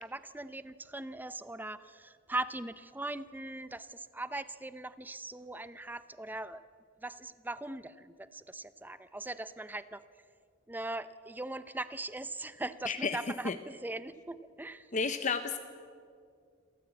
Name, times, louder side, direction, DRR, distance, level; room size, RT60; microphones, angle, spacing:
voice 1, 0.0-6.7 7.0-10.0 10.7-14.9, right 2 dB, 10° right, 14 dB, 0.6 m, -40 dB
voice 2, 12.9-13.2 13.4-13.6 14.9-15.6, left 5 dB, 40° left, 9 dB, 0.8 m, -31 dB
28.5 x 14.0 x 8.4 m, 2.2 s
head